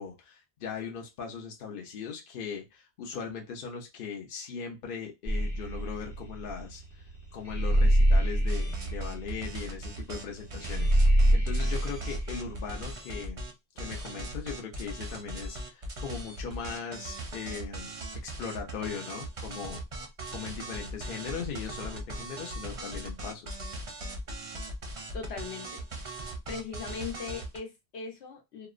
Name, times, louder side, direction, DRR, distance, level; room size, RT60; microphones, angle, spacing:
voice 1, 0.0-6.8 7.3-13.4 13.8-17.9 18.2-19.8 20.3-23.6, left 6 dB, 60° left, 1 dB, 0.8 m, -39 dB
sound 1, 5.3-12.8, equal, 15° left, 0.8 m, -25 dB
sound 2, 8.5-13.5 13.8-27.6, right 1 dB, 40° right, 0.5 m, -39 dB
voice 2, 25.1-26.2 26.5-28.7, left 6 dB, 75° left, 3 dB, 1.0 m, -39 dB
2.8 x 2.0 x 2.4 m, 0.22 s
omnidirectional pair, 1.1 m